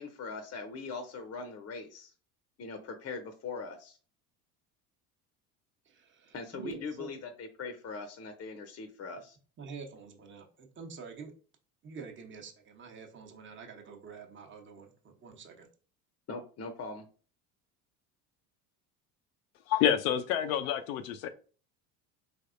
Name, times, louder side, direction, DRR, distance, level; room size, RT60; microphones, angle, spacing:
voice 1, 0.0-2.1 2.6-4.0 6.3-9.4 16.3-17.0, left 4 dB, 35° left, 7 dB, 0.7 m, -41 dB
voice 2, 5.9-7.1 9.6-11.3 11.8-15.7, right 5 dB, 25° right, 2 dB, 0.9 m, -47 dB
voice 3, 19.7-21.3, left 9 dB, 75° left, 8 dB, 0.5 m, -28 dB
4.0 x 3.4 x 2.5 m, 0.38 s
hypercardioid pair, 75°, 43 cm